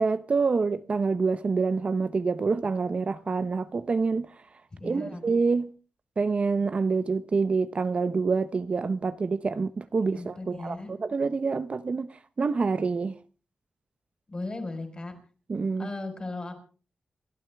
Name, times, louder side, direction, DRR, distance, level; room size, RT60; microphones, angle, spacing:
voice 1, 0.0-4.3 4.8-5.7 6.2-13.2 15.5-15.9, right 4 dB, 45° right, 0.7 m, -27 dB
voice 2, 4.8-5.2 10.1-10.9 14.3-15.1 15.8-16.5, left 2 dB, 30° left, 4.1 m, -36 dB
29.0 x 12.5 x 3.4 m
wide cardioid pair, 125°, 3 cm